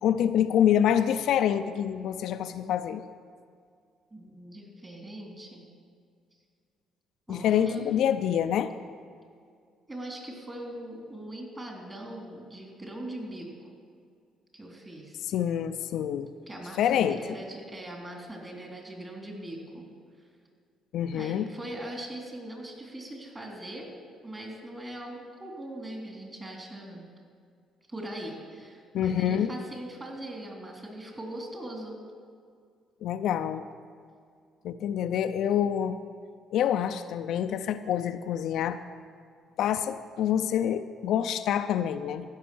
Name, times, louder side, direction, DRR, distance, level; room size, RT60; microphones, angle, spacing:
voice 1, 0.0-3.0 7.3-8.7 15.3-16.3 16.8-17.2 20.9-21.5 28.9-29.5 33.0-33.6 34.6-36.0 36.5-38.8 39.6-42.2, left 9 dB, 70° left, 9 dB, 0.4 m, -26 dB
voice 2, 4.1-5.6 7.3-7.9 9.9-13.7 14.5-15.2 16.5-19.9 21.1-23.9 24.2-27.1 27.9-32.0, right 1 dB, 25° right, 0 dB, 3.4 m, -41 dB
15.0 x 6.2 x 6.2 m, 2.2 s
supercardioid pair, 65°, 0 cm